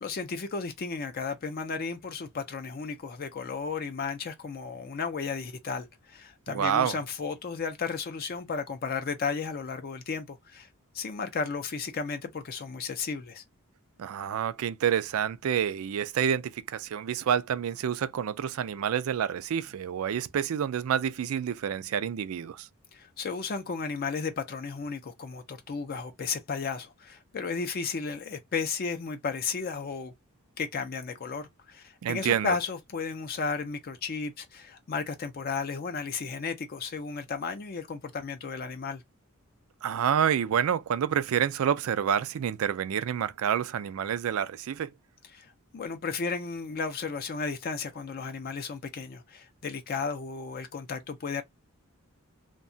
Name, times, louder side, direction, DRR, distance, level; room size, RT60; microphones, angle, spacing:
voice 1, 0.0-10.7 10.9-13.4 22.9-30.1 30.6-39.0 45.3-51.4, left 5 dB, 45° left, 0.4 m, -34 dB
voice 2, 6.5-7.0 14.0-22.7 32.0-32.6 39.8-44.9, right 8 dB, 65° right, 0.3 m, -28 dB
2.8 x 2.2 x 2.5 m
head